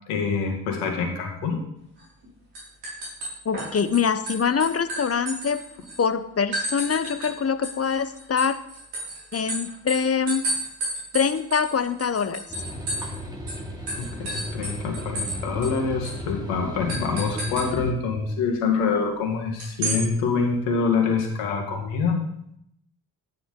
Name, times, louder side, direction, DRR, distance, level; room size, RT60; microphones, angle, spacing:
voice 1, 0.1-1.6 14.0-22.2, left 5 dB, 75° left, 1 dB, 2.2 m, -25 dB
sound 1, 2.0-2.3 2.5-4.0 4.3-6.0 6.5-7.3 7.6-13.2 13.5-13.6 13.9-15.4 15.6-15.7 16.0-16.2 16.9-17.7 19.6-20.0, right 1 dB, 80° right, 5.4 m, -31 dB
voice 2, 3.4-5.6 6.0-8.6 9.3-10.4 11.1-12.4, left 6 dB, 30° left, 13 dB, 1.0 m, -24 dB
sound 2, 12.5-17.9, equal, 10° right, 3.6 m, -36 dB
12.0 x 10.0 x 3.8 m, 0.74 s
hypercardioid pair, 40°, 49 cm